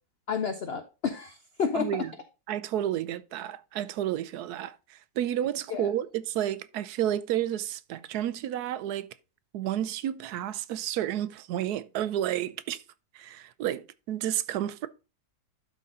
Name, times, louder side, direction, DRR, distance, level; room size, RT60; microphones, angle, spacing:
voice 1, 0.3-2.1 5.7-5.9, left 6 dB, 55° left, 0.7 m, -31 dB
voice 2, 1.7-2.1 2.5-9.1 9.5-12.8 13.1-14.9, right 11 dB, 75° right, 1.1 m, -31 dB
12.0 x 4.0 x 3.7 m
omnidirectional pair, 1.7 m